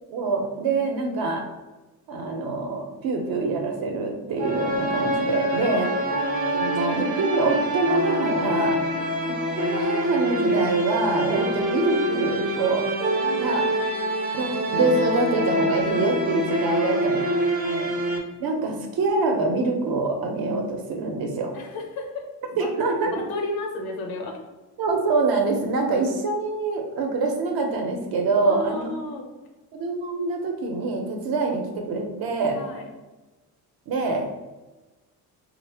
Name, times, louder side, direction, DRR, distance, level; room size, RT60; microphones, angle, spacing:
voice 1, 0.1-1.4 2.1-5.9 6.5-8.8 9.6-12.8 13.4-13.7 14.3-17.2 17.6-17.9 18.4-21.5 22.6-23.2 24.8-29.0 29.7-32.6 33.9-34.4, right 3 dB, 60° right, 3 dB, 0.7 m, -25 dB
sound 1, 4.4-18.2, right 1 dB, 20° right, 0.5 m, -25 dB
voice 2, 5.6-5.9 8.8-9.1 13.2-13.6 16.7-17.7 21.5-22.3 22.5-22.7 23.0-24.4 28.3-29.3 32.5-32.9, left 2 dB, 65° left, 2 dB, 0.7 m, -34 dB
2.7 x 2.1 x 3.3 m, 1.1 s
cardioid pair, 105°, 40 cm